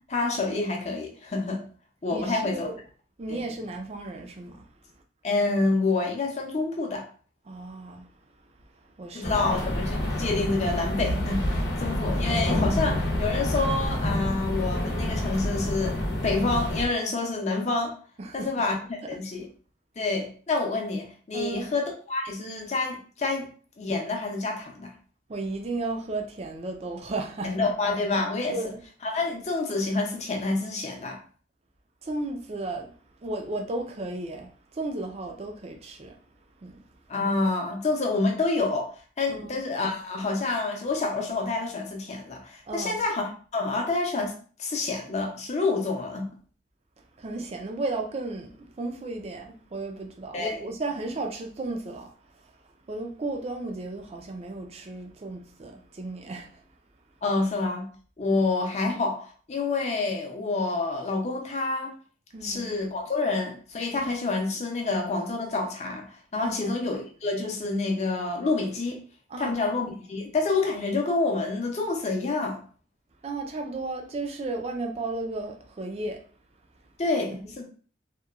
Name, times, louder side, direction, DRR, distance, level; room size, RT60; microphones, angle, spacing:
voice 1, 0.1-1.6 2.0-2.7 3.3-3.4 5.2-7.0 9.1-18.0 18.3-18.7 19.1-19.5 20.0-23.5 23.8-24.9 27.4-28.6 29.0-31.2 37.1-38.9 39.2-44.3 44.6-46.3 50.3-50.6 57.2-57.9 58.2-61.9 62.4-69.0 69.4-72.6 77.0-77.6, left 3 dB, 40° left, 0.6 m, -28 dB
voice 2, 2.1-2.7 3.2-4.7 7.5-8.1 8.8-9.5 18.2-18.5 21.3-21.7 25.3-27.6 28.5-28.8 32.0-32.9 33.2-36.2 36.6-36.8 39.3-39.6 42.7-43.0 47.2-52.5 52.9-56.6 62.3-62.8 66.4-66.8 69.3-69.5 73.2-76.2, right 2 dB, 35° right, 0.4 m, -34 dB
sound 1, 9.2-16.9, left 1 dB, 75° left, 0.8 m, -28 dB
2.8 x 2.2 x 2.3 m
head